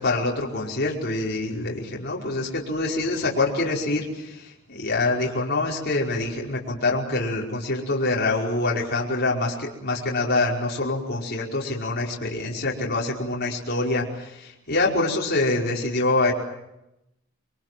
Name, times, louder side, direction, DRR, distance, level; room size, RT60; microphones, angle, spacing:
voice 1, 0.0-16.3, left 2 dB, 45° left, -2 dB, 5.2 m, -25 dB
28.0 x 24.0 x 7.8 m, 0.88 s
head